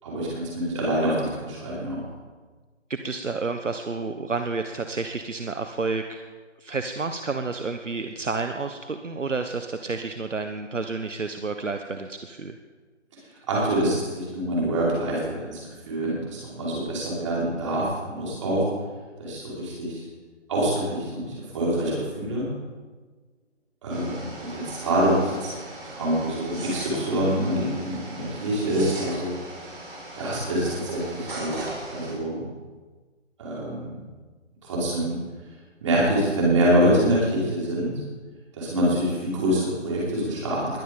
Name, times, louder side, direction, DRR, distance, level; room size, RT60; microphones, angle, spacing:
voice 1, 0.0-2.0 13.5-15.6 15.9-18.6 19.2-20.0 20.5-22.5 23.8-25.5 25.8-29.4 30.2-32.4 33.4-33.9 34.6-35.2 35.8-38.0 38.6-40.8, right 1 dB, 25° right, -6 dB, 5.7 m, -25 dB
voice 2, 2.9-6.2 6.6-12.6, right 4 dB, 75° right, 7 dB, 1.2 m, -30 dB
sound 1, 23.9-32.1, right 2 dB, 45° right, 6.1 m, -38 dB
21.5 x 9.5 x 5.3 m, 1.4 s
figure-of-eight pair, 160°, 37 cm